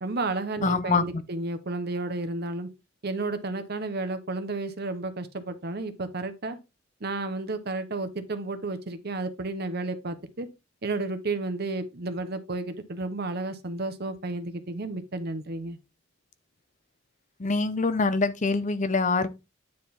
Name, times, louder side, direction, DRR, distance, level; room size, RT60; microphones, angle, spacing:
voice 1, 0.0-2.7 3.0-6.6 7.0-10.5 10.8-15.8, right 2 dB, 50° right, 0.9 m, -32 dB
voice 2, 0.6-1.2 17.4-19.3, left 3 dB, 35° left, 0.6 m, -25 dB
9.5 x 3.7 x 4.3 m
head